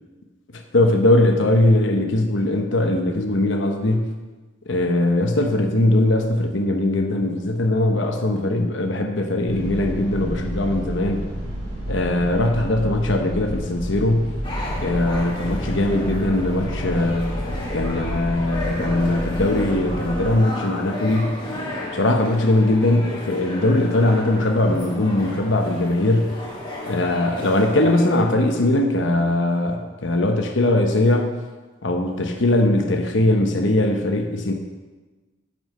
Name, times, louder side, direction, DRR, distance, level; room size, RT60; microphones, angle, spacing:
voice 1, 0.7-4.1 4.7-11.2 11.9-14.3 14.8-17.3 17.7-21.4 21.9-26.3 26.9-31.3 31.8-34.5, left 1 dB, 65° left, 4 dB, 1.0 m, -20 dB
sound 1, 9.5-20.2, equal, 35° right, 3.0 m, -30 dB
sound 2, 14.4-28.2, left 2 dB, 25° left, 2.0 m, -33 dB
9.4 x 7.2 x 5.5 m, 1.3 s
head